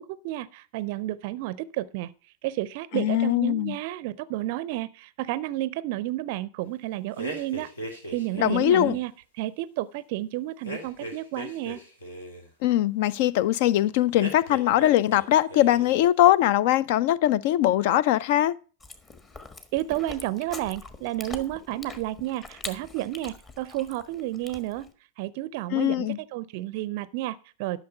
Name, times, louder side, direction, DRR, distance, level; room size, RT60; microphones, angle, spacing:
voice 1, 0.0-2.1 2.4-9.1 9.4-11.8 19.7-24.9 25.2-27.8, right 16 dB, 50° right, 0.5 m, -31 dB
voice 2, 2.9-3.7 8.4-8.9 12.6-18.5 25.7-26.2, left 13 dB, 50° left, 0.4 m, -21 dB
sound 1, 7.2-9.0 10.6-12.5 14.1-15.2 15.5-16.0, equal, 75° left, 2.6 m, -38 dB
Chewing mastication, 18.8-24.9, left 3 dB, 20° left, 1.4 m, -43 dB
12.0 x 6.4 x 5.4 m
figure-of-eight pair, 90°, 0 cm